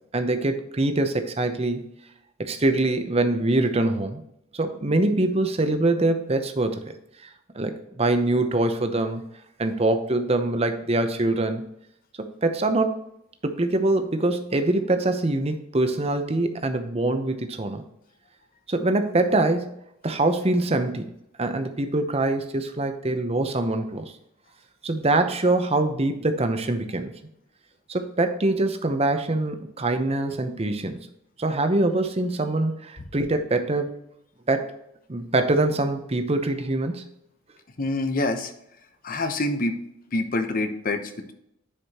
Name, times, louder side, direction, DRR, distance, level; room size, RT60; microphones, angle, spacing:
voice 1, 0.1-1.8 2.4-4.2 4.5-6.8 7.5-9.2 9.6-11.6 12.2-13.0 13.4-17.8 18.7-19.7 20.0-21.1 21.4-24.1 24.8-27.1 27.9-31.0 31.4-33.9 34.5-34.7 35.1-37.1, right 2 dB, 30° right, 7 dB, 0.8 m, -24 dB
voice 2, 37.8-38.5 39.0-39.8 40.1-41.3, left 2 dB, 45° left, 7 dB, 0.9 m, -26 dB
10.0 x 5.0 x 2.9 m, 0.78 s
head